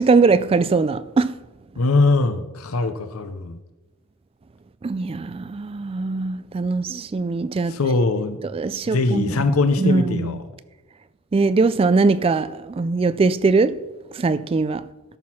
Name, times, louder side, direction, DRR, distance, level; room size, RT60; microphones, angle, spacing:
voice 1, 0.0-1.3 4.8-7.7 8.4-9.4 9.8-10.3 11.3-13.8 14.1-14.8, right 4 dB, 25° right, 0.3 m, -21 dB
voice 2, 1.8-3.6 7.7-8.4 8.9-10.4, left 3 dB, 80° left, 0.7 m, -21 dB
13.0 x 6.1 x 5.9 m
head